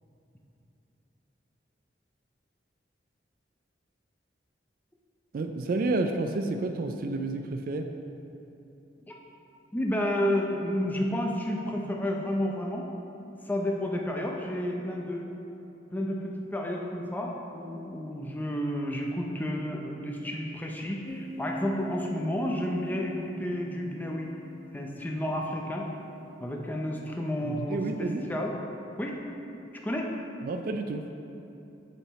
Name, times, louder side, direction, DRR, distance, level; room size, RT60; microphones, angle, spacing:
voice 1, 5.3-7.9 27.4-28.2 30.4-31.1, right 2 dB, 55° right, 6 dB, 0.3 m, -30 dB
voice 2, 9.7-12.9 13.5-15.2 15.9-24.3 24.7-25.9 26.4-28.5 29.0-29.2 29.8-30.1, left 1 dB, 10° left, -1 dB, 0.5 m, -31 dB
sound 1, 21.1-28.1, left 1 dB, 25° left, 0.9 m, -44 dB
7.0 x 5.6 x 4.2 m, 2.9 s
head